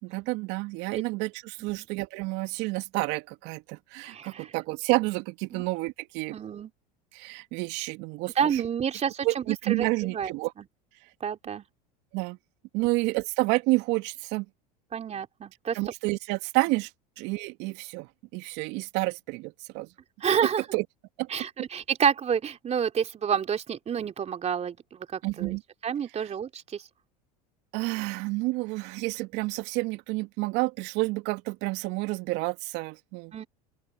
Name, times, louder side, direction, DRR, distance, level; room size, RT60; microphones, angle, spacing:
voice 1, 0.0-6.4 7.1-8.6 9.2-10.5 12.1-12.4 12.7-14.5 15.7-16.9 17.2-19.9 20.7-20.8 21.2-21.3 25.2-25.6 27.7-33.3, right 23 dB, 60° right, 2.3 m, -29 dB
voice 2, 4.0-4.5 5.5-5.6 6.3-6.7 8.4-10.6 11.2-11.6 12.8-12.9 14.9-15.8 20.2-20.6 21.3-24.8 25.1-25.6 25.8-26.8 33.3-33.5, right 7 dB, 35° right, 3.2 m, -29 dB
open air
hypercardioid pair, 85°, 20 cm